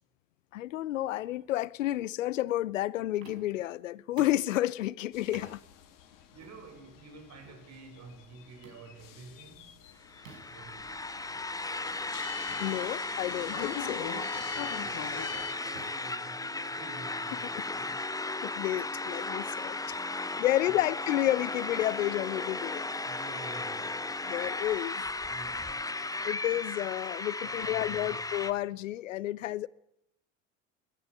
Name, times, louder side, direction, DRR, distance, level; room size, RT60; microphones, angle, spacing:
voice 1, 0.5-5.6 12.6-14.1 18.4-22.9 24.3-25.0 26.2-29.7, left 14 dB, 75° left, 0.8 m, -31 dB
sound 1, 3.2-3.6 4.2-4.5 5.3-5.6 6.4-6.6 7.4-7.6 8.6-8.9 10.3-10.6 11.9-12.0 12.5-12.6 13.4-13.6 14.5-14.8 15.7-17.0, right 4 dB, 80° right, 5.1 m, -52 dB
sound 2, 5.1-15.5, left 10 dB, 55° left, 2.9 m, -45 dB
voice 2, 6.1-9.8 10.5-11.4 14.5-18.1 20.3-20.9 22.9-24.1 25.2-25.9 27.4-28.4, right 4 dB, 45° right, 7.5 m, -50 dB
sound 3, 10.0-28.5, left 2 dB, 10° left, 1.1 m, -35 dB
22.5 x 13.0 x 9.1 m
figure-of-eight pair, 65°, 39 cm